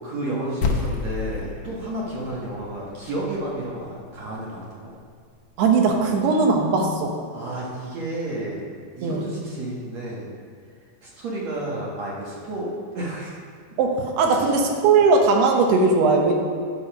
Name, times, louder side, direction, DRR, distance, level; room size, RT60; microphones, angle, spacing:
voice 1, 0.0-4.9 7.3-8.6 9.0-10.3 11.0-13.3 14.3-14.4, right 1 dB, 55° right, -5 dB, 2.1 m, -31 dB
sound 1, 0.6-5.1, left 4 dB, 90° left, 1.5 m, -31 dB
voice 2, 5.6-7.2 9.0-9.3 13.8-16.3, right 4 dB, 85° right, 2 dB, 3.1 m, -19 dB
11.5 x 5.6 x 5.3 m, 2.1 s
omnidirectional pair, 4.6 m